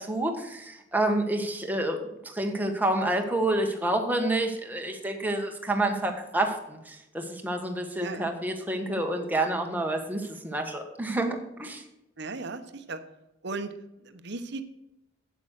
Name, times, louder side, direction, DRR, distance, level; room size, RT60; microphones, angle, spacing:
voice 1, 0.0-11.8, right 1 dB, 10° right, 3 dB, 1.4 m, -28 dB
voice 2, 12.2-13.0 13.4-13.7 14.0-14.6, right 3 dB, 60° right, 10 dB, 1.0 m, -36 dB
8.5 x 8.1 x 6.4 m, 0.89 s
head